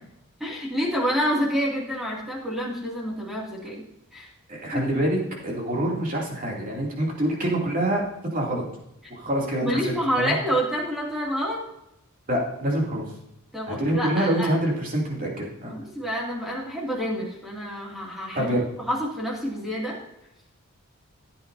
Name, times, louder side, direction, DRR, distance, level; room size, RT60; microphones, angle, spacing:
voice 1, 0.4-3.8 4.1-4.3 9.6-11.6 13.5-14.5 15.7-18.5 18.9-20.0, equal, ahead, -3 dB, 2.4 m, -28 dB
voice 2, 4.5-8.0 8.3-8.6 9.1-10.4 12.3-13.0 13.7-15.7 18.3-18.7, right 1 dB, 40° right, -2 dB, 2.7 m, -26 dB
14.5 x 8.7 x 2.7 m, 0.84 s
head